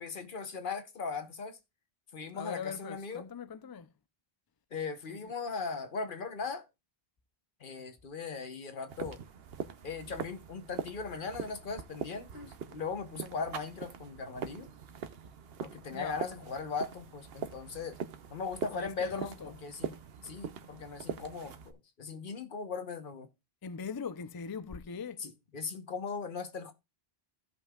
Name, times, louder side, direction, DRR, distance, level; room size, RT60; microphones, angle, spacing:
voice 1, 0.0-1.6 2.1-3.3 4.7-6.7 7.6-9.2 9.8-14.7 15.6-18.0 18.3-23.3 25.2-26.7, left 5 dB, 60° left, 1.1 m, -39 dB
voice 2, 2.3-3.9 5.1-5.3 15.9-16.2 18.7-19.5 23.6-25.2, left 6 dB, 30° left, 0.4 m, -41 dB
sound 1, 8.9-21.7, right 7 dB, 75° right, 1.0 m, -42 dB
16.0 x 5.4 x 2.3 m
omnidirectional pair, 1.0 m